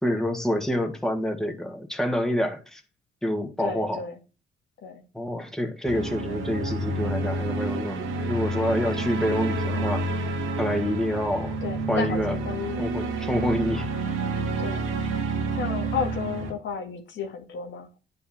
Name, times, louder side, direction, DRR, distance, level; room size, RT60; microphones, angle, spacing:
voice 1, 0.0-2.8 3.2-4.0 5.1-10.2 10.6-11.5 11.9-12.4 12.8-13.9, left 1 dB, 5° left, 2.0 m, -27 dB
voice 2, 3.6-4.2 4.8-5.0 8.8-8.9 11.6-12.9 14.6-14.9 15.6-18.0, left 6 dB, 70° left, 2.0 m, -32 dB
sound 1, 5.9-16.5, right 2 dB, 85° right, 2.2 m, -29 dB
9.6 x 5.4 x 6.1 m
cardioid pair, 90°, 20 cm